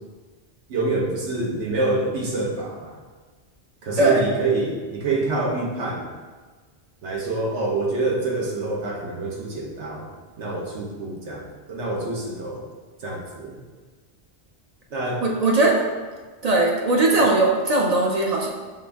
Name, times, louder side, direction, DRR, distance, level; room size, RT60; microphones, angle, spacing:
voice 1, 0.7-2.9 3.8-6.0 7.0-10.1 10.4-12.6 13.0-13.6 14.9-15.2, right 2 dB, 90° right, -2 dB, 1.2 m, -26 dB
voice 2, 15.2-15.8 16.4-18.5, right 2 dB, 55° right, 0 dB, 0.4 m, -19 dB
5.6 x 2.6 x 3.4 m, 1.4 s
omnidirectional pair, 1.1 m